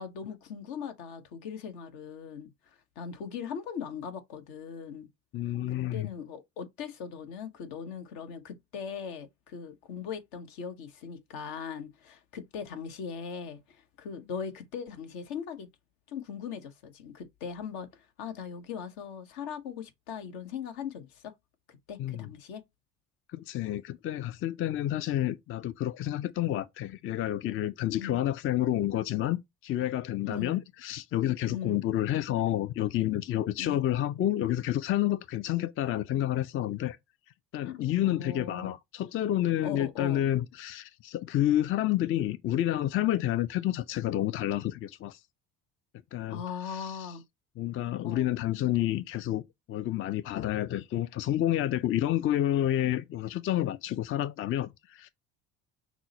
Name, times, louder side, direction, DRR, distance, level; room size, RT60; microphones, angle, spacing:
voice 1, 0.0-5.1 5.6-15.7 16.1-21.3 21.7-22.6 28.0-28.2 30.2-30.6 31.5-31.9 33.6-33.8 37.6-38.7 39.6-40.2 46.3-47.2 48.0-48.3, left 7 dB, 70° left, 1.1 m, -40 dB
voice 2, 5.3-6.1 22.0-22.3 23.3-37.0 37.5-45.2 46.1-46.4 46.7-47.0 47.6-49.4 49.7-55.1, left 13 dB, 35° left, 0.4 m, -29 dB
6.0 x 2.0 x 4.0 m
hypercardioid pair, 60°, 40 cm